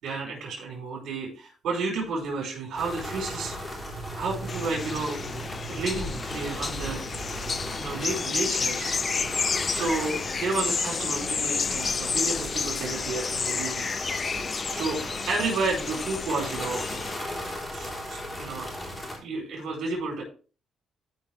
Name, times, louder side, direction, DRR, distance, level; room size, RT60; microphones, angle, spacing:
voice 1, 0.0-3.9 4.2-7.2 7.8-8.9 9.7-13.9 14.2-16.9 17.7-18.7 19.2-20.2, right 3 dB, 70° right, -2 dB, 4.3 m, -32 dB
sound 1, 2.7-19.2, equal, 15° left, 3.9 m, -37 dB
sound 2, 4.5-17.2, left 5 dB, 40° left, 0.6 m, -31 dB
13.0 x 5.4 x 3.5 m, 0.36 s
cardioid pair, 90°, 0 cm